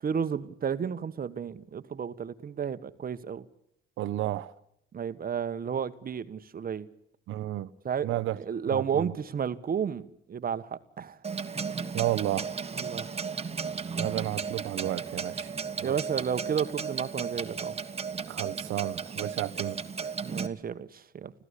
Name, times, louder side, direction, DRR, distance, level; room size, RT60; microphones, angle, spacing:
voice 1, 0.0-3.4 4.9-6.9 7.8-11.2 12.7-13.1 15.8-17.8 20.2-21.3, right 7 dB, 45° right, 1.5 m, -32 dB
voice 2, 4.0-4.5 7.3-7.7 8.0-8.4 8.7-9.1 11.9-12.5 14.0-15.5 15.8-16.0 18.3-20.1, right 14 dB, 85° right, 1.1 m, -32 dB
Clock, 11.2-20.5, right 5 dB, 30° right, 1.7 m, -35 dB
25.5 x 16.5 x 8.4 m
cardioid pair, 90°, 20 cm